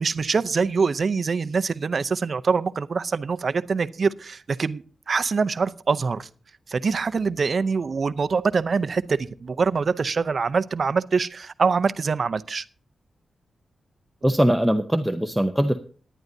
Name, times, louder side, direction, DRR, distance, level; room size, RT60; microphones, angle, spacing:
voice 1, 0.0-6.3 6.7-12.6, right 5 dB, 40° right, 14 dB, 0.6 m, -24 dB
voice 2, 14.2-15.8, equal, 5° right, 6 dB, 0.7 m, -21 dB
18.5 x 11.0 x 2.7 m, 0.41 s
wide cardioid pair, 180°, 0 cm